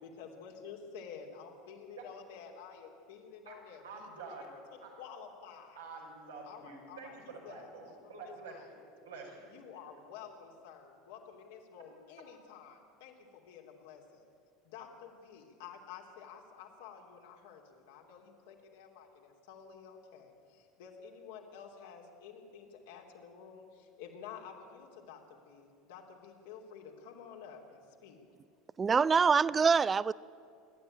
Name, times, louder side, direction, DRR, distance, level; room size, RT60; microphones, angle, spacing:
voice 1, 0.0-4.1 4.4-5.8 6.4-8.7 9.5-14.2 14.6-28.2, left 7 dB, 60° left, 3.1 m, -51 dB
voice 2, 3.8-4.5 4.8-4.9 5.7-9.5, right 4 dB, 75° right, 5.9 m, -48 dB
voice 3, 28.8-30.1, right 5 dB, 25° right, 0.4 m, -25 dB
28.5 x 12.5 x 9.1 m
figure-of-eight pair, 75°, 0 cm